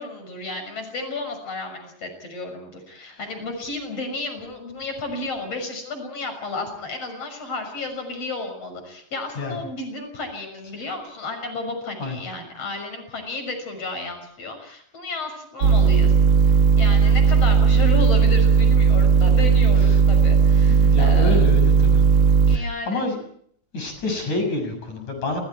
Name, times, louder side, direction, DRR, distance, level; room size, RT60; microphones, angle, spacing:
voice 1, 0.0-16.1 16.5-21.5 22.5-23.1, left 3 dB, 50° left, 6 dB, 7.4 m, -32 dB
sound 1, 15.6-22.6, right 6 dB, 50° right, 1.8 m, -16 dB
voice 2, 20.8-22.0 22.5-23.2 23.7-25.4, left 2 dB, 70° left, 5 dB, 8.2 m, -28 dB
30.0 x 25.0 x 4.7 m, 0.64 s
omnidirectional pair, 3.5 m